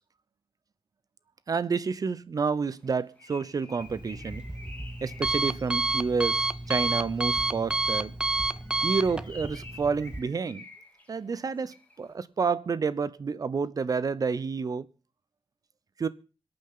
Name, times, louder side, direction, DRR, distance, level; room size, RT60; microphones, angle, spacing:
voice 1, 1.5-4.4 5.0-8.1 8.8-10.7 11.1-14.9 16.0-16.1, right 5 dB, 40° right, 0.8 m, -29 dB
Bird, 2.8-6.9 8.5-12.0, left 2 dB, 15° left, 3.3 m, -50 dB
Alarm, 3.8-10.2, right 2 dB, 10° right, 0.6 m, -30 dB
26.5 x 8.9 x 3.8 m
wide cardioid pair, 145°, 9 cm